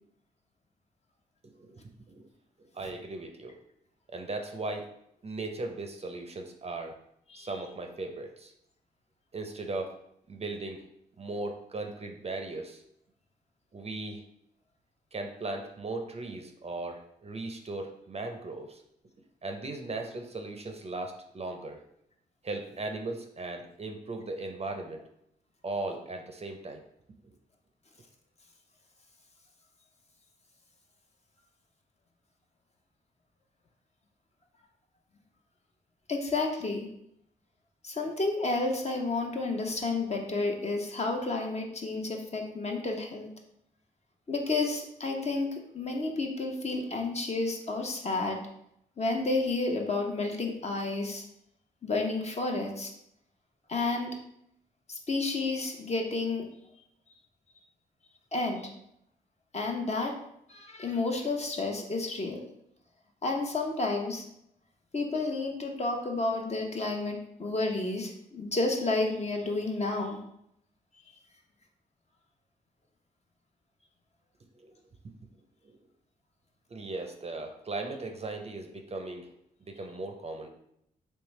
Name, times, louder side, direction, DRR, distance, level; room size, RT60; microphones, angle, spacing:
voice 1, 2.7-3.6 4.1-4.9 5.2-7.0 7.3-8.5 9.3-9.9 10.3-10.8 11.2-12.8 13.7-14.2 15.1-18.8 19.4-21.8 22.4-25.0 25.6-26.8 74.6-74.8 75.6-75.8 76.7-79.3 79.7-80.5, right 2 dB, 35° right, 4 dB, 0.6 m, -37 dB
voice 2, 36.1-36.9 37.8-43.3 44.3-48.4 49.0-51.2 51.8-52.9 53.7-54.1 54.9-56.4 58.3-58.7 59.5-60.1 60.5-62.4 63.2-64.2 64.9-70.2, left 3 dB, 35° left, 2 dB, 0.8 m, -31 dB
3.2 x 3.2 x 3.1 m, 0.75 s
supercardioid pair, 45°, 18 cm